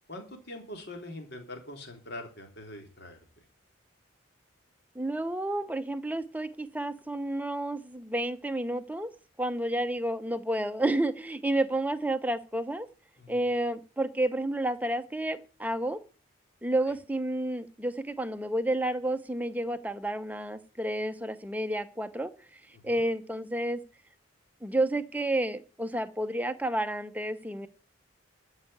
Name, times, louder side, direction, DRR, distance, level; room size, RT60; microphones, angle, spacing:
voice 1, 0.1-3.2 13.2-13.4 22.7-23.0, left 1 dB, 50° left, 3 dB, 3.7 m, -43 dB
voice 2, 4.9-9.1 9.4-12.9 13.3-16.0 16.6-23.8 24.6-27.7, right 1 dB, 5° right, 9 dB, 0.8 m, -30 dB
13.0 x 5.7 x 9.2 m, 0.34 s
head